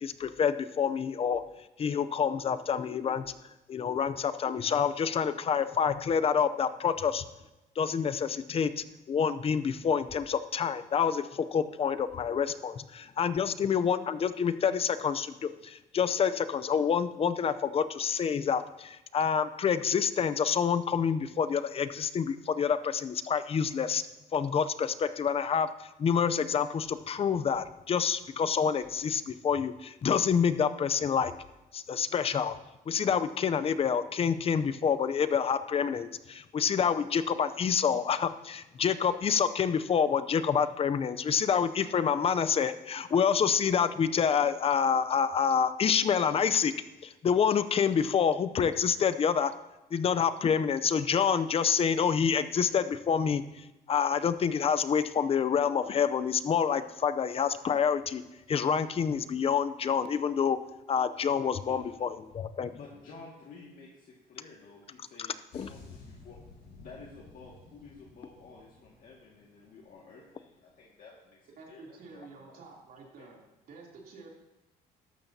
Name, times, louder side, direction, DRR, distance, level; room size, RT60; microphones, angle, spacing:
voice 1, 0.0-1.4 1.8-3.3 3.7-7.2 7.8-24.0 24.3-31.3 31.7-32.6 32.9-46.7 47.0-49.5 49.9-58.2 58.5-60.6 60.9-62.7 65.5-65.7, left 7 dB, 35° left, 12 dB, 0.6 m, -27 dB
voice 2, 61.7-62.1 62.7-66.4 66.7-72.6 73.2-73.3, left 4 dB, 55° left, -3 dB, 2.0 m, -52 dB
sound 1, 65.5-70.1 70.3-70.6, left 3 dB, 85° left, 4.6 m, -53 dB
voice 3, 71.6-73.4 73.7-74.3, right 4 dB, 60° right, -2 dB, 3.2 m, -49 dB
13.5 x 12.0 x 2.8 m, 1.0 s
cardioid pair, 110°, 17 cm